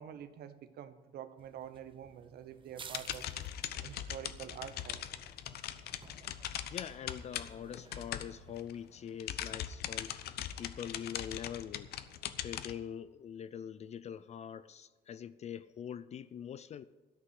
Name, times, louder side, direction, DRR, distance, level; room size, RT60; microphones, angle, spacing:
voice 1, 0.0-3.3 3.8-5.0, right 9 dB, 70° right, 12 dB, 1.0 m, -47 dB
sound 1, 1.4-8.9, right 6 dB, 30° right, 0.7 m, -56 dB
sound 2, 2.8-8.7 9.1-12.7, left 11 dB, 70° left, 0.8 m, -41 dB
voice 2, 6.6-10.2 10.6-11.9 12.4-16.8, left 9 dB, 40° left, 14 dB, 0.4 m, -44 dB
13.5 x 5.6 x 9.5 m, 1.2 s
cardioid pair, 110°, 17 cm